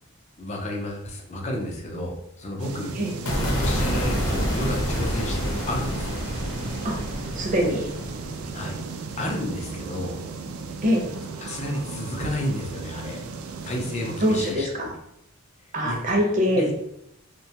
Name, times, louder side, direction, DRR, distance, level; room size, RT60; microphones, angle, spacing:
voice 1, 0.4-2.9 3.3-6.2 8.5-10.1 11.4-13.2 13.6-14.7 15.8-16.1 16.5-16.7, left 1 dB, 35° left, 0 dB, 0.5 m, -31 dB
sound 1, 2.6-14.6, right 4 dB, 85° right, 0.3 m, -36 dB
sound 2, 3.3-9.5, equal, 65° left, 0.8 m, -28 dB
voice 2, 7.4-7.9 10.8-11.0 14.2-14.9 15.7-16.7, equal, 40° right, 0 dB, 0.6 m, -23 dB
2.7 x 2.2 x 2.8 m, 0.78 s
head